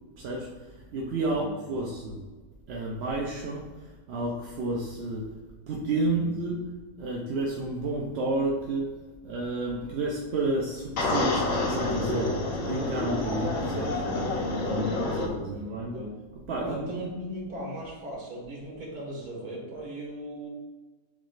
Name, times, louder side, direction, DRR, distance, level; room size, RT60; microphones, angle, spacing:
voice 1, 0.2-2.2 2.7-5.3 5.7-6.6 7.0-8.9 9.2-14.4 14.6-14.9 15.2-16.0 16.5-17.0, right 2 dB, 60° right, -2 dB, 0.7 m, -31 dB
voice 2, 1.3-1.6 6.1-6.5 14.6-16.2 16.6-20.5, right 1 dB, 85° right, -3 dB, 1.9 m, -38 dB
sound 1, 11.0-15.3, left 2 dB, 65° left, 1.1 m, -28 dB
7.1 x 3.0 x 2.4 m, 1.3 s
omnidirectional pair, 1.5 m